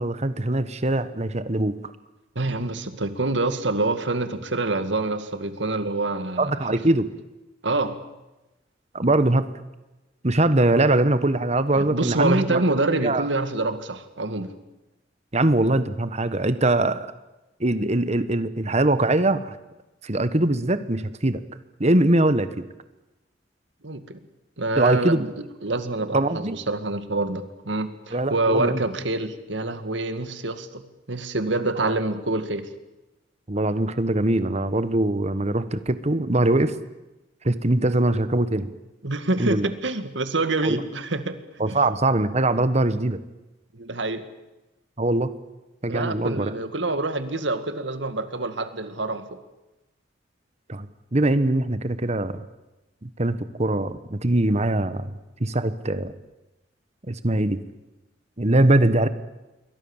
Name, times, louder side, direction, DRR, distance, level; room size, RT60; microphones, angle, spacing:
voice 1, 0.0-1.8 6.4-7.1 8.9-9.5 10.2-12.6 13.0-13.3 15.3-17.1 17.6-19.6 20.0-21.4 21.8-22.6 24.8-25.3 26.1-26.6 28.1-28.8 33.5-36.7 37.4-38.7 39.4-39.7 40.6-40.8 41.6-43.2 45.0-45.3 45.8-46.5 50.7-50.9 51.1-52.5 53.0-55.1 55.4-56.1 57.1-57.6 58.4-59.1, right 2 dB, 35° right, 12 dB, 1.4 m, -22 dB
voice 2, 2.4-6.8 7.6-8.0 11.7-14.5 23.8-24.2 24.6-25.3 25.6-30.8 31.1-32.7 39.0-41.8 43.7-44.2 45.9-49.4, right 2 dB, 75° right, 10 dB, 2.2 m, -26 dB
28.5 x 23.0 x 7.4 m, 1.0 s
head